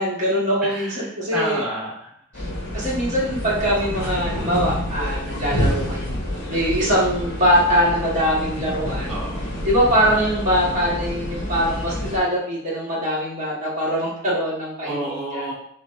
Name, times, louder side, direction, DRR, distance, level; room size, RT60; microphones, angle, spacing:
voice 1, 0.0-1.6 2.3-2.4 2.7-6.1 6.5-9.1 9.6-15.5, equal, 35° right, -6 dB, 1.6 m, -22 dB
voice 2, 0.6-2.1 9.1-9.5 14.8-15.5, right 1 dB, 5° right, -9 dB, 0.8 m, -29 dB
sound 1, 2.3-12.2, left 1 dB, 55° left, 1.1 m, -28 dB
4.5 x 3.2 x 3.1 m, 0.67 s
head